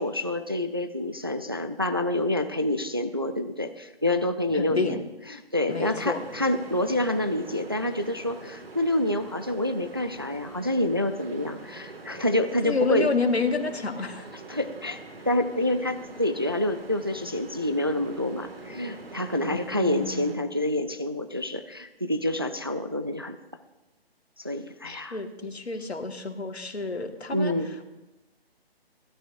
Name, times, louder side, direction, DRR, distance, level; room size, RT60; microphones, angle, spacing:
voice 1, 0.0-5.0 5.3-13.1 14.5-15.0 15.3-23.4 24.4-25.2 27.3-27.7, left 1 dB, 25° right, 8 dB, 0.3 m, -27 dB
voice 2, 4.5-5.0 5.7-6.3 12.6-14.2 19.4-20.4 24.8-27.5, left 4 dB, 80° left, 6 dB, 1.7 m, -29 dB
sound 1, 5.7-20.4, right 3 dB, 65° right, 2.1 m, -44 dB
30.0 x 12.5 x 2.6 m, 1.1 s
figure-of-eight pair, 150°, 32 cm